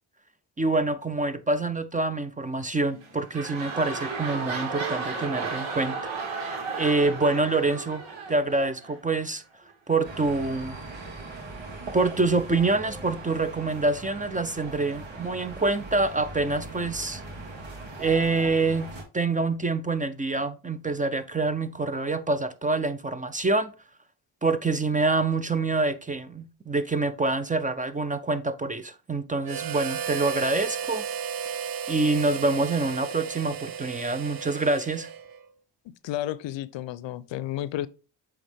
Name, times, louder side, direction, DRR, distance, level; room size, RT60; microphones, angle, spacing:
voice 1, 0.6-6.0 6.3-9.4 9.9-10.8 11.9-17.2 18.0-18.9 19.1-23.7 24.4-31.1 31.9-35.1, right 3 dB, 15° right, 0.6 m, -26 dB
sound 1, 2.9-9.2 9.9-10.0, right 4 dB, 85° right, 2.4 m, -33 dB
sound 2, 10.0-19.0, right 2 dB, 70° right, 2.2 m, -40 dB
Harmonica, 29.4-35.5, right 7 dB, 45° right, 0.7 m, -34 dB
voice 2, 35.9-37.9, left 13 dB, 65° left, 0.6 m, -32 dB
7.8 x 3.6 x 3.4 m
cardioid pair, 80°, 48 cm